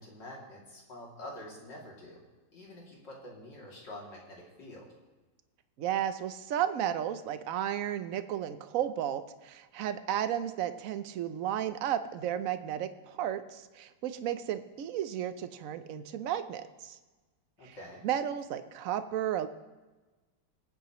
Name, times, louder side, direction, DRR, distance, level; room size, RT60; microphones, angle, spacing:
voice 1, 0.0-2.2 2.5-4.8 17.6-18.0, left 1 dB, 75° left, -3 dB, 3.5 m, -47 dB
voice 2, 5.8-17.0 17.6-17.8 18.0-19.5, right 10 dB, 60° right, 11 dB, 0.9 m, -33 dB
22.5 x 9.1 x 3.1 m, 1.2 s
omnidirectional pair, 1.9 m